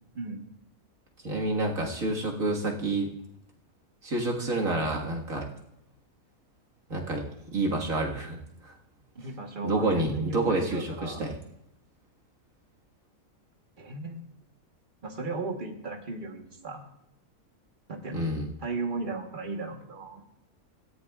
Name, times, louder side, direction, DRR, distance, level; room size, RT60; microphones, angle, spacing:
voice 1, 1.2-3.1 4.0-5.5 6.9-7.2 7.5-8.4 8.6-8.7 9.6-11.4 18.1-18.5, right 2 dB, 60° right, -1 dB, 2.1 m, -28 dB
voice 2, 9.1-11.3 13.8-14.2 15.0-16.9 17.9-18.3 18.6-20.2, right 3 dB, 35° right, 3 dB, 1.3 m, -36 dB
17.0 x 14.5 x 2.4 m, 0.80 s
omnidirectional pair, 1.6 m